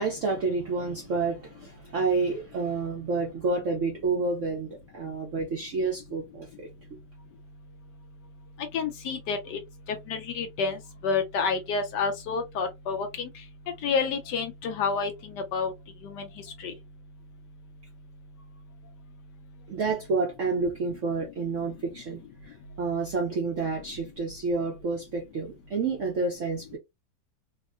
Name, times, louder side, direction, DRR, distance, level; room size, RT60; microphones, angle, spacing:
voice 1, 0.0-6.5 19.7-26.8, right 4 dB, 65° right, 0.7 m, -29 dB
voice 2, 8.7-9.6 9.9-13.4 13.8-15.7 16.0-16.3 16.6-16.7, left 5 dB, 75° left, 1.1 m, -29 dB
3.6 x 2.1 x 2.3 m
omnidirectional pair, 2.1 m